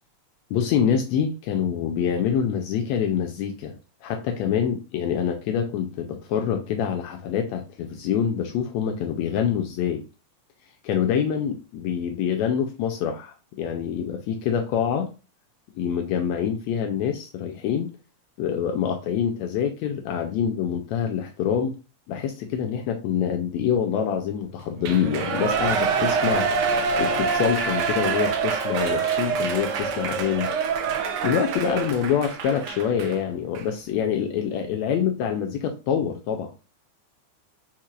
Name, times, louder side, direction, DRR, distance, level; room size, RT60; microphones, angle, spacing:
voice 1, 0.5-3.8 4.0-10.0 10.8-15.1 15.8-17.9 18.4-21.7 22.1-26.5 27.0-30.5 31.2-36.5, left 8 dB, 80° left, 1.7 m, -26 dB
Shout / Cheering, 24.8-33.1 33.5-33.6, right 5 dB, 85° right, 1.2 m, -25 dB
4.7 x 4.3 x 2.4 m
omnidirectional pair, 3.5 m